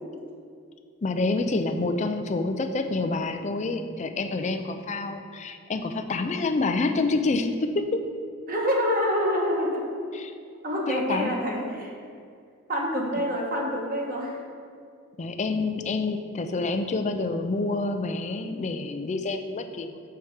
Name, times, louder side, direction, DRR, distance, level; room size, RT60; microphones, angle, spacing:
voice 1, 1.0-8.0 10.1-10.3 10.9-11.3 15.2-20.0, left 3 dB, 30° left, 7 dB, 0.4 m, -27 dB
voice 2, 8.5-9.8 10.6-11.9 12.7-14.4, equal, 40° right, -2 dB, 1.2 m, -26 dB
5.8 x 4.6 x 6.3 m, 2.3 s
head